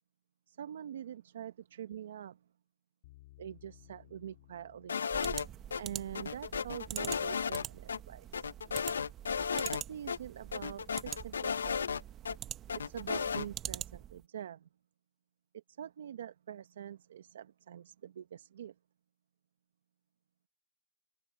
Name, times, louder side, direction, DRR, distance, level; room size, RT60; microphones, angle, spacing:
voice 1, 0.5-2.4 3.4-5.1 5.8-8.5 9.5-11.9 12.7-14.7 15.5-18.7, right 10 dB, 50° right, 0.9 m, -45 dB
sound 1, 3.0-10.1, left 18 dB, 30° left, 3.1 m, -63 dB
sound 2, 4.9-5.8 6.1-7.6 7.9-8.0 8.3-9.8 10.1-10.2 10.5-12.3 12.7-13.5, left 6 dB, 85° left, 0.8 m, -34 dB
sound 3, 5.1-14.2, right 11 dB, 15° right, 0.9 m, -45 dB
hypercardioid pair, 175°, 0 cm